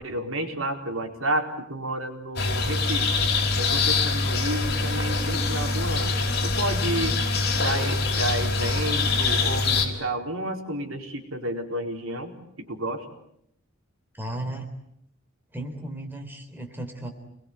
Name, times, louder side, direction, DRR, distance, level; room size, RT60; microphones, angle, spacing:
voice 1, 0.0-3.3 3.6-7.2 7.5-13.0, right 1 dB, 70° right, 4 dB, 4.5 m, -31 dB
sound 1, 2.4-9.9, left 3 dB, 50° left, 5.5 m, -24 dB
voice 2, 14.1-14.7 15.5-17.1, right 1 dB, 10° right, 4 dB, 3.8 m, -35 dB
29.0 x 21.5 x 9.5 m, 0.74 s
head